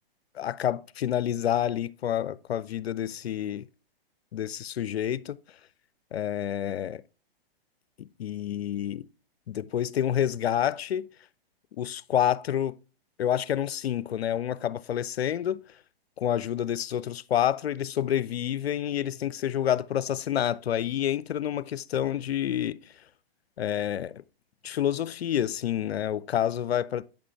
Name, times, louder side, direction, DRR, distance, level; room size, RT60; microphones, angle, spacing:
voice 1, 0.3-3.7 4.3-5.4 6.1-7.0 8.0-9.1 9.5-11.1 11.8-12.7 13.2-15.6 16.2-22.8 23.6-24.2 24.6-27.0, left 10 dB, 85° left, 0.5 m, -28 dB
8.6 x 5.9 x 3.2 m
hypercardioid pair, 120°, 30 cm